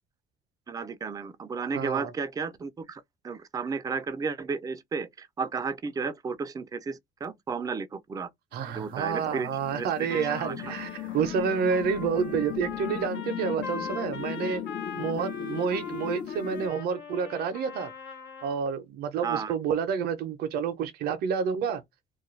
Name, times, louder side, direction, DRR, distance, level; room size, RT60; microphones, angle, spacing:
voice 1, 0.7-8.3 8.8-10.5 19.2-19.5, right 5 dB, 20° right, 0.4 m, -33 dB
voice 2, 1.7-2.1 8.5-14.6 15.0-17.9 18.4-21.8, right 6 dB, 65° right, 0.6 m, -29 dB
sound 1, 8.5-16.7, left 10 dB, 55° left, 0.6 m, -37 dB
Trumpet, 10.1-18.6, left 5 dB, 80° left, 1.0 m, -42 dB
2.3 x 2.2 x 3.0 m
cardioid pair, 110°, 17 cm